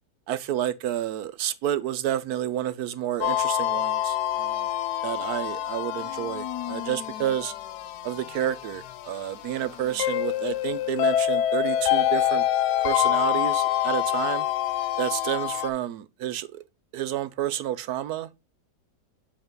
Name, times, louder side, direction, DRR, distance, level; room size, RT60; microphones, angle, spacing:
voice 1, 0.3-4.7 5.0-7.5 8.0-12.4 12.8-14.5 15.0-16.6 16.9-18.3, right 11 dB, 75° right, 1.0 m, -30 dB
sound 1, 3.2-15.7, left 12 dB, 75° left, 1.1 m, -26 dB
7.9 x 4.2 x 3.6 m
omnidirectional pair, 1.8 m